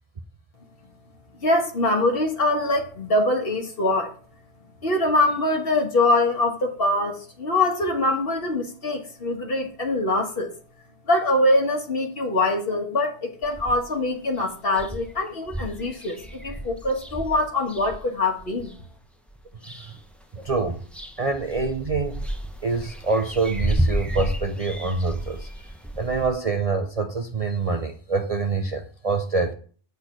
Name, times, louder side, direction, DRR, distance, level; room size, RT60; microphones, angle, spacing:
voice 1, 1.4-4.1 4.8-10.5 11.1-18.8, left 2 dB, 55° left, 1.6 m, -23 dB
sound 1, 13.4-14.0 14.4-14.5 14.7-18.7 19.3-20.1 20.4-26.3, equal, ahead, 0.7 m, -31 dB
voice 2, 19.6-20.0 20.3-20.8 21.2-22.2 22.6-25.7 26.0-29.5, right 4 dB, 40° right, 0.6 m, -26 dB
8.2 x 4.3 x 5.9 m
omnidirectional pair, 1.2 m